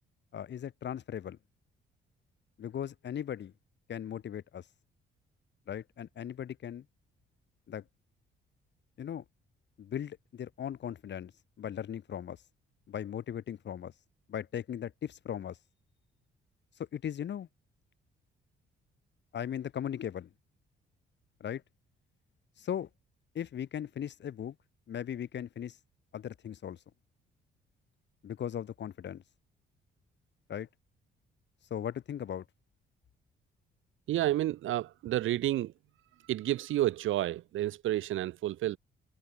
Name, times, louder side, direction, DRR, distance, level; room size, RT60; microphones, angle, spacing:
voice 1, 0.3-1.4 2.6-3.5 3.9-4.6 5.7-6.8 7.7-7.8 9.0-9.2 9.8-11.3 11.6-12.4 12.9-13.9 14.3-15.6 16.9-17.5 19.3-20.3 21.4-21.6 22.6-22.9 23.3-24.6 24.9-25.8 26.1-26.8 28.2-29.2 30.5-30.7 31.7-32.4, left 9 dB, 60° left, 7.3 m, -38 dB
voice 2, 34.1-35.7 36.2-38.8, right 14 dB, 80° right, 2.0 m, -30 dB
cardioid pair, 90°, 20 cm